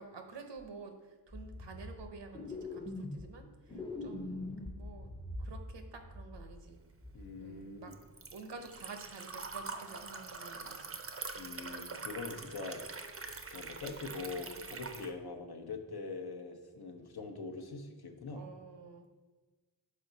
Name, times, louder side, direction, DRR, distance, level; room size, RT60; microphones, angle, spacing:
voice 1, 0.0-5.1 5.4-6.8 7.4-7.9 8.3-11.0 18.3-19.1, right 4 dB, 80° right, 5 dB, 0.8 m, -50 dB
sound 1, 0.6-0.7 1.3-2.1 2.3-3.4 3.7-5.7 6.0-6.7 7.0-7.3, left 2 dB, 10° left, 0.6 m, -43 dB
Liquid, 6.8-15.1, right 4 dB, 35° right, 0.5 m, -44 dB
voice 2, 7.1-8.0 11.4-12.8 13.5-18.4, left 3 dB, 65° left, 5 dB, 0.8 m, -43 dB
5.5 x 4.6 x 3.9 m, 1.3 s
wide cardioid pair, 65°, 42 cm